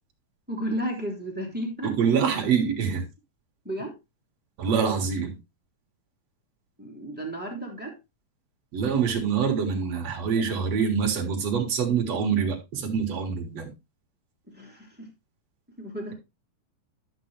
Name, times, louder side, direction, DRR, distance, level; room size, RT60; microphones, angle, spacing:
voice 1, 0.5-2.0 3.6-3.9 6.8-8.0 14.5-15.1 15.8-16.1, right 1 dB, 5° right, 2.0 m, -33 dB
voice 2, 1.8-3.0 4.6-5.4 8.7-13.7, right 6 dB, 50° right, 2.2 m, -25 dB
12.0 x 6.0 x 3.2 m
omnidirectional pair, 4.8 m